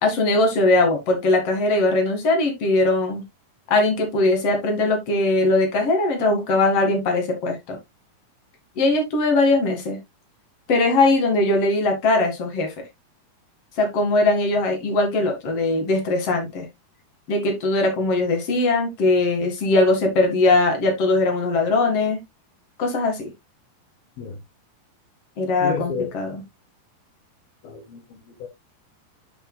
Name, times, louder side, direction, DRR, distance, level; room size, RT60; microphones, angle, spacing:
voice 1, 0.0-3.2 3.7-7.8 8.8-10.0 10.7-12.7 13.8-16.7 17.3-22.2 22.8-23.3 25.4-26.4, left 2 dB, 45° left, 2.4 m, -20 dB
voice 2, 25.6-26.2 27.6-28.5, left 5 dB, 70° left, 2.8 m, -31 dB
10.5 x 5.6 x 2.3 m
omnidirectional pair, 4.8 m